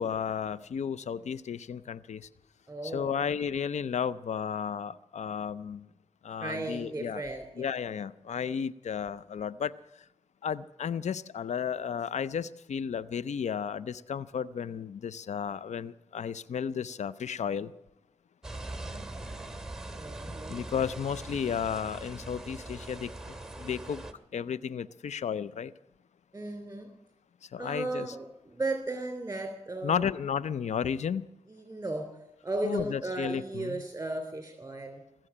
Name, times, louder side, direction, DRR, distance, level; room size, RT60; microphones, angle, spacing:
voice 1, 0.0-2.3 2.8-5.9 6.2-7.2 7.6-9.7 10.4-17.7 20.3-23.1 23.6-24.0 24.3-25.7 27.5-28.2 29.8-31.3 32.6-33.8, left 7 dB, 85° left, 18 dB, 0.5 m, -33 dB
voice 2, 2.7-3.2 6.4-7.7 20.0-20.6 26.3-26.9 27.6-30.1 31.5-32.1 32.4-35.0, right 2 dB, 20° right, 5 dB, 3.1 m, -35 dB
sound 1, 18.4-24.1, right 2 dB, 5° right, 2.1 m, -41 dB
19.0 x 7.6 x 9.9 m, 0.86 s
cardioid pair, 45°, 12 cm